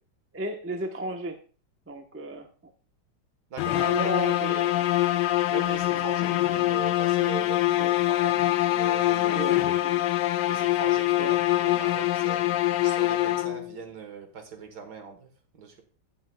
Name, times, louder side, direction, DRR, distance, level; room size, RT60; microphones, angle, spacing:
voice 1, 0.3-1.4 1.9-2.5 3.7-4.9 7.8-7.9 9.3-10.0 11.2-11.4, right 2 dB, 10° right, 4 dB, 0.7 m, -34 dB
voice 2, 3.5-3.9 4.4-4.6 5.5-8.4 8.7-9.5 10.5-15.8, right 6 dB, 70° right, 6 dB, 2.0 m, -40 dB
sound 1, 3.6-13.8, left 15 dB, 90° left, 1.3 m, -24 dB
17.5 x 6.8 x 2.3 m, 0.37 s
omnidirectional pair, 1.9 m